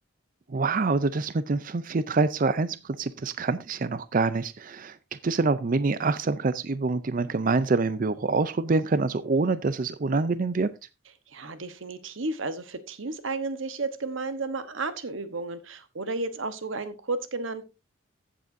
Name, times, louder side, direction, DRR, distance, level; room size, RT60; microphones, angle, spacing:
voice 1, 0.5-5.0 5.2-10.7, right 3 dB, 45° right, 0.5 m, -26 dB
voice 2, 11.3-17.6, right 3 dB, 80° right, 1.1 m, -33 dB
15.0 x 7.6 x 2.6 m
head